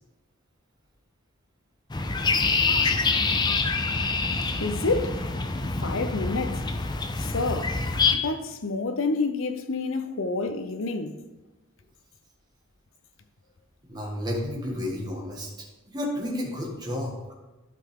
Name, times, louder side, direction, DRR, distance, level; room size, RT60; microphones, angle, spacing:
sound 1, 1.9-8.1, left 4 dB, 20° left, 0.5 m, -26 dB
voice 1, 4.6-5.2 5.8-6.6 7.2-7.8 8.1-11.2, left 3 dB, 70° left, 0.7 m, -28 dB
voice 2, 13.9-15.5 15.9-17.2, left 1 dB, 20° right, 1.6 m, -31 dB
12.0 x 5.7 x 3.7 m
head